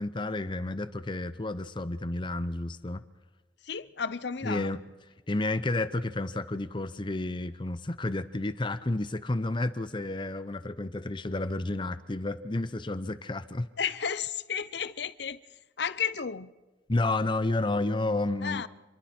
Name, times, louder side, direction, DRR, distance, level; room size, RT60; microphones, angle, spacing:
voice 1, 0.0-3.0 4.4-4.8 5.3-13.7 16.9-18.6, left 2 dB, 25° left, 0.7 m, -31 dB
voice 2, 3.6-4.7 13.8-15.4 15.8-16.5 18.4-18.7, left 7 dB, 60° left, 0.7 m, -32 dB
27.5 x 22.5 x 4.4 m
head